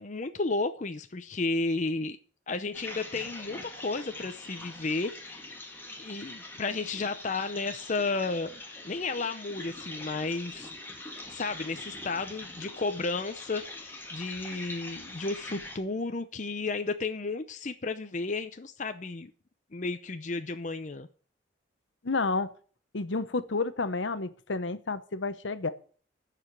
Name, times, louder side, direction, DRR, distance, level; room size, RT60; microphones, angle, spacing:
voice 1, 0.0-2.2 2.5-5.4 6.0-10.7 11.3-19.3 19.7-21.1, left 3 dB, 40° left, 8 dB, 0.6 m, -33 dB
sound 1, 2.7-15.8, left 2 dB, 10° left, 1.8 m, -43 dB
voice 2, 22.0-22.5 22.9-25.7, left 3 dB, 70° left, 12 dB, 0.9 m, -30 dB
12.5 x 5.0 x 8.5 m, 0.43 s
head